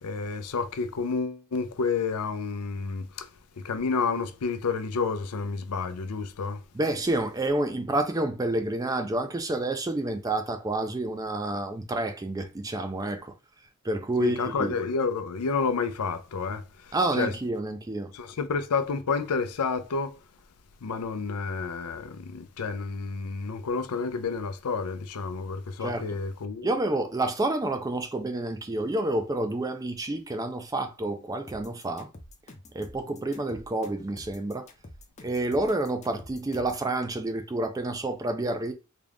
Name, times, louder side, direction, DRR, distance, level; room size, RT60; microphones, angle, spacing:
voice 1, 0.0-3.3 3.6-6.6 14.2-17.3 18.1-20.2 20.8-26.7, left 4 dB, 85° left, 0.5 m, -30 dB
voice 2, 6.7-13.3 13.8-14.8 16.9-18.1 25.8-26.1 26.6-32.1 32.7-34.7 35.2-38.7, right 2 dB, 15° right, 0.4 m, -29 dB
sound 1, 31.5-36.9, left 1 dB, 30° left, 0.6 m, -47 dB
3.7 x 2.4 x 3.4 m
head